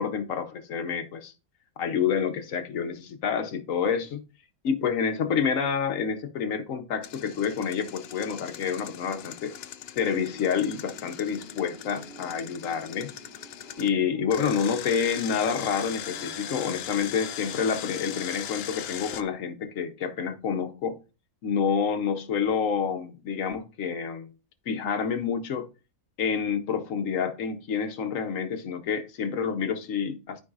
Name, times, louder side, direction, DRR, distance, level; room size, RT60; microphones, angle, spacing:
voice 1, 0.0-1.3 1.8-4.2 4.6-9.5 10.0-13.1 13.8-21.0 21.4-24.3 24.7-25.7 26.2-30.4, left 6 dB, 65° left, 1.1 m, -28 dB
Engine, 7.0-13.9 14.3-19.2, left 10 dB, 80° left, 0.5 m, -40 dB
sound 1, 10.0-16.8, equal, 85° right, 2.7 m, -49 dB
12.5 x 4.7 x 2.4 m
omnidirectional pair, 1.6 m